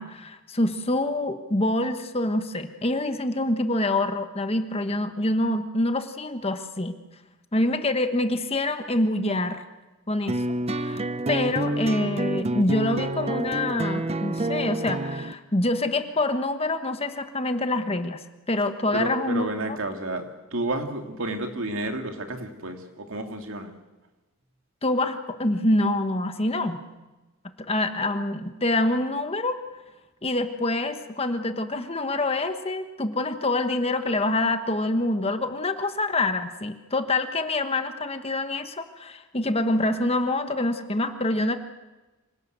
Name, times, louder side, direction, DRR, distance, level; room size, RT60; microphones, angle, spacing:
voice 1, 0.0-7.0 7.5-9.6 10.1-10.4 10.7-18.2 18.5-19.5 24.8-26.8 27.6-29.6 30.2-41.6, left 2 dB, 25° left, 8 dB, 1.3 m, -26 dB
sound 1, 10.3-15.3, right 2 dB, 25° right, 0.7 m, -28 dB
voice 2, 18.9-23.7, right 2 dB, 60° right, 5 dB, 2.6 m, -31 dB
26.0 x 18.0 x 8.1 m, 1.1 s
head